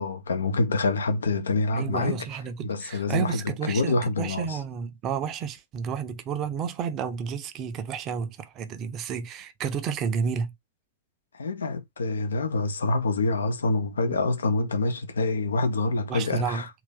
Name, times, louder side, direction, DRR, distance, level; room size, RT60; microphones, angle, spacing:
voice 1, 0.0-2.2 2.6-3.4 3.7-4.6 11.3-16.7, left 3 dB, 70° left, 0.8 m, -26 dB
voice 2, 1.7-10.5 14.1-14.2 16.1-16.7, right 7 dB, 35° right, 0.7 m, -31 dB
3.9 x 2.9 x 3.5 m
figure-of-eight pair, 90°, 0 cm